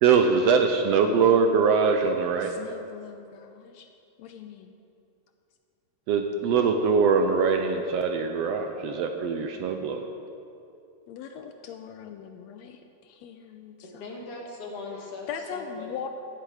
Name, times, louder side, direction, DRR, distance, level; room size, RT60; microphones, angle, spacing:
voice 1, 0.0-2.5 6.1-10.1, right 5 dB, 75° right, 5 dB, 1.6 m, -22 dB
voice 2, 2.4-3.9 4.2-4.7 11.1-14.0 15.3-16.1, left 7 dB, 80° left, 6 dB, 1.7 m, -40 dB
voice 3, 14.0-16.1, left 3 dB, 55° left, -1 dB, 2.8 m, -39 dB
15.0 x 11.0 x 4.9 m, 2.7 s
omnidirectional pair, 3.3 m